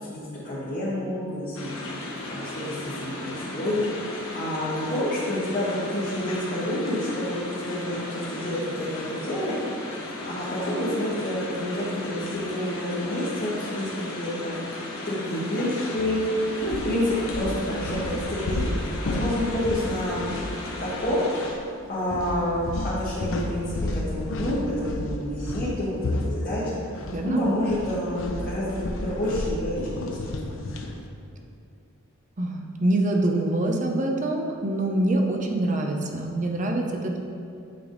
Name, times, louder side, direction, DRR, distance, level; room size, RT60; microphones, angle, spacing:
voice 1, 0.0-1.7 2.3-9.5 10.2-16.3 16.6-18.7 19.0-20.3 20.8-21.5 21.9-30.6, left 1 dB, 40° left, -10 dB, 1.2 m, -29 dB
sound 1, 1.5-21.5, left 2 dB, 85° left, 1.1 m, -36 dB
sound 2, 16.0-16.2 16.6-21.1 21.4-21.6 22.1-27.2 27.5-31.0, left 1 dB, 65° left, 0.5 m, -32 dB
voice 2, 32.4-37.2, right 1 dB, 40° right, 2 dB, 0.6 m, -25 dB
8.6 x 3.4 x 3.9 m, 2.5 s
head